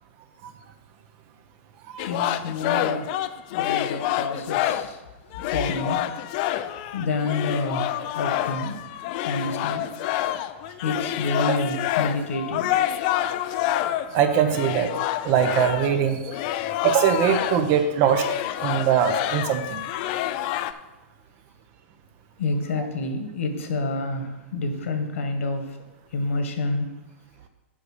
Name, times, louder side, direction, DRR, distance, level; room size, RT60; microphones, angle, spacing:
voice 1, 2.0-3.2 3.5-5.0 5.4-6.1 6.9-8.8 9.2-9.9 10.8-12.7 22.4-25.8 26.1-26.9, left 2 dB, 75° left, 6 dB, 1.6 m, -28 dB
sound 1, 2.0-5.0 5.3-17.8 18.0-20.7, left 13 dB, 40° left, 0.4 m, -28 dB
voice 2, 14.1-14.9 15.2-16.4 16.8-18.3 18.6-19.8, right 8 dB, 35° right, 8 dB, 0.8 m, -22 dB
7.7 x 5.4 x 6.6 m, 1.1 s
hypercardioid pair, 155°, 7 cm